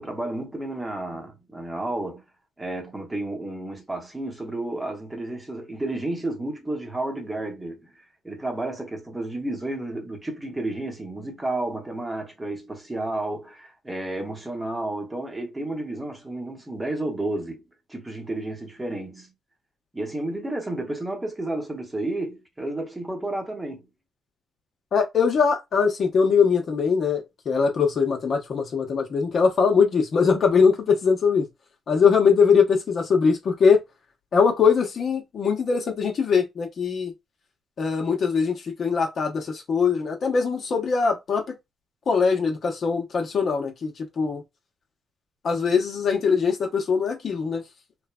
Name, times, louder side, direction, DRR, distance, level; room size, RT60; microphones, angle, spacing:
voice 1, 0.0-2.2 2.6-7.9 8.2-17.6 17.9-19.3 19.9-23.8, right 2 dB, 15° right, 0.9 m, -31 dB
voice 2, 24.9-31.5 31.9-33.8 34.3-37.1 37.8-41.5 42.1-44.4 45.4-47.6, left 5 dB, 55° left, 0.8 m, -21 dB
3.1 x 2.1 x 2.3 m
cardioid pair, 90°, 0 cm